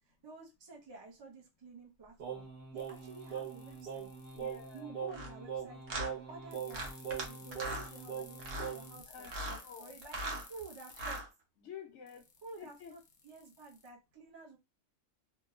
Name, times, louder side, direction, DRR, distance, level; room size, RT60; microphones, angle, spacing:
voice 1, 0.0-2.5 2.7-4.1 4.7-10.2 10.5-11.2 12.4-14.6, right 3 dB, 25° right, 0.6 m, -51 dB
Singing, 2.2-9.0, right 7 dB, 55° right, 1.2 m, -42 dB
sound 1, 2.8-4.8 6.5-11.2 12.1-13.9, left 5 dB, 55° left, 0.6 m, -55 dB
voice 2, 4.3-4.9 9.1-9.9 11.6-12.2 12.6-12.9, left 7 dB, 75° left, 0.9 m, -50 dB
sound 2, 5.1-5.3 5.9-6.1 6.7-7.3 7.5-7.9 8.4-8.7 9.2-9.6 10.0-10.4 10.9-11.3, right 1 dB, 85° right, 1.2 m, -39 dB
2.9 x 2.1 x 2.3 m
omnidirectional pair, 1.3 m